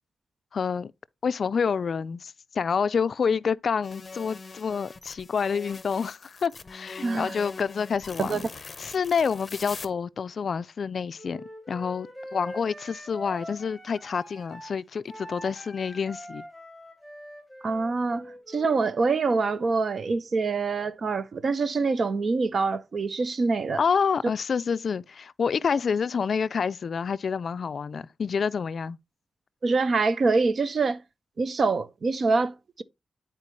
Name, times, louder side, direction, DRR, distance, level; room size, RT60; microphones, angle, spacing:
voice 1, 0.5-0.9 1.2-8.4 8.8-16.4 23.8-29.0, left 6 dB, 60° left, 0.3 m, -28 dB
sound 1, 3.8-9.9, left 4 dB, 35° left, 0.7 m, -43 dB
voice 2, 7.0-7.3 8.2-8.4 17.6-23.8 29.6-31.0 31.4-32.8, right 4 dB, 55° right, 0.6 m, -25 dB
Wind instrument woodwind instrument, 11.2-14.7 15.1-18.8, equal, 5° right, 3.7 m, -43 dB
9.7 x 4.4 x 3.1 m
wide cardioid pair, 135°, 0 cm